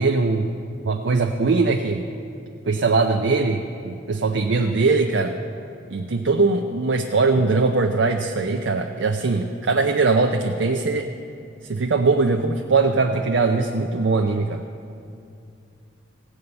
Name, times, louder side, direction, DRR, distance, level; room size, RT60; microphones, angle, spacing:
voice 1, 0.0-2.1 2.7-5.4 5.9-11.1 11.7-14.6, right 3 dB, 80° right, 4 dB, 0.5 m, -21 dB
16.0 x 5.5 x 7.8 m, 2.6 s
head